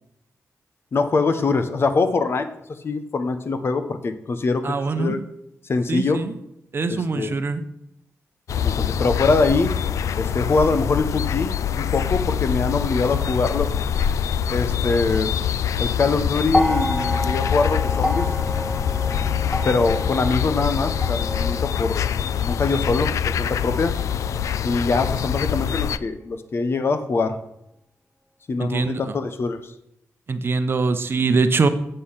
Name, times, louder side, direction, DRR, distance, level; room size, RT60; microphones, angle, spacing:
voice 1, 0.9-2.5 2.8-5.2 5.7-6.2 6.9-7.3 8.6-9.7 10.2-13.7 14.5-15.3 15.8-18.3 19.6-23.9 24.6-27.4 28.5-29.6, left 3 dB, 50° left, 9 dB, 0.9 m, -23 dB
voice 2, 4.6-5.2 5.9-6.4 6.7-7.6 28.6-29.1 30.3-31.7, right 4 dB, 45° right, 10 dB, 0.8 m, -23 dB
sound 1, 8.5-26.0, left 9 dB, 85° left, 0.4 m, -24 dB
sound 2, 16.5-24.8 25.9-26.0, left 1 dB, 5° left, 0.8 m, -29 dB
8.4 x 7.7 x 5.7 m, 0.78 s
wide cardioid pair, 100°, 5 cm